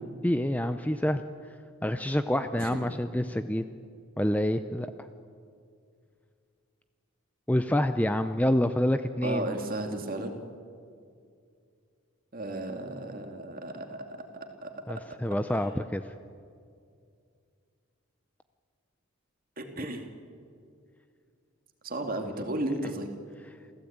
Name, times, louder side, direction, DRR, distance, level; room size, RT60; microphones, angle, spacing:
voice 1, 0.2-1.2 1.8-3.6 4.2-4.9 7.5-9.4 14.9-16.0, left 1 dB, 5° left, 9 dB, 0.5 m, -27 dB
voice 2, 9.2-10.4 12.3-14.0 14.6-14.7 19.6-20.1 21.8-23.1, right 1 dB, 40° right, 4 dB, 2.4 m, -34 dB
27.5 x 16.0 x 8.7 m, 2.3 s
head